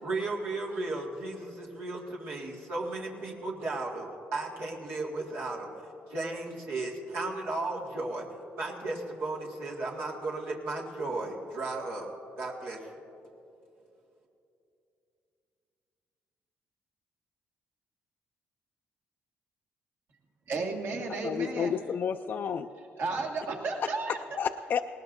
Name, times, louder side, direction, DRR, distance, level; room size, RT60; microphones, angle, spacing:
voice 1, 0.0-5.7 6.1-8.3 8.6-12.1 12.4-12.8, right 2 dB, 85° right, -3 dB, 2.0 m, -35 dB
voice 2, 20.5-21.7 23.0-24.2, right 3 dB, 65° right, 0 dB, 1.9 m, -33 dB
voice 3, 21.2-22.7 23.8-24.8, left 7 dB, 55° left, 6 dB, 0.4 m, -31 dB
20.0 x 18.5 x 2.6 m, 2.9 s
cardioid pair, 90°, 4 cm